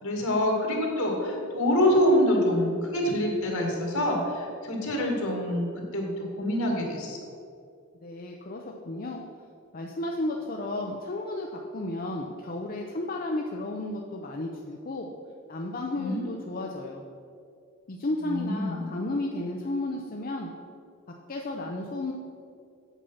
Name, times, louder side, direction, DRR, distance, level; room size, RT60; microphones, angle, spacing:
voice 1, 0.0-7.2 16.0-16.2 18.2-18.9, left 1 dB, 85° left, 0 dB, 2.2 m, -26 dB
voice 2, 8.0-9.2 9.7-15.1 15.5-17.0 17.9-20.5 21.3-22.1, left 2 dB, 40° left, 0 dB, 0.6 m, -33 dB
8.2 x 7.2 x 5.5 m, 2.4 s
head